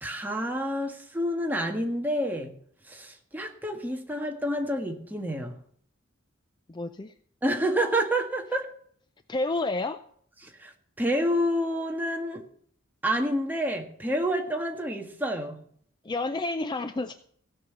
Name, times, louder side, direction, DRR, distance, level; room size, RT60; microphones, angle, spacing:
voice 1, 0.0-2.6 2.9-5.6 7.4-8.7 10.4-10.7 11.0-12.4 13.0-15.6, equal, 10° right, 1.5 m, -28 dB
voice 2, 6.7-7.1 9.3-10.0 16.0-17.2, left 2 dB, 20° left, 0.4 m, -30 dB
16.5 x 5.6 x 7.9 m
head